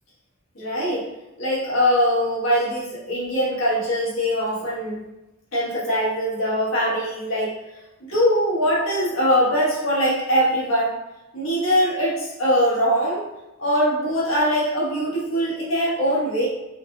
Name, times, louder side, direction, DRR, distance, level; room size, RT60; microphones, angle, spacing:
voice 1, 0.5-1.1 1.4-5.1 5.5-7.5 8.0-11.0 11.3-13.2 13.6-16.5, equal, 85° left, -7 dB, 1.5 m, -22 dB
4.3 x 2.3 x 3.2 m, 0.99 s
head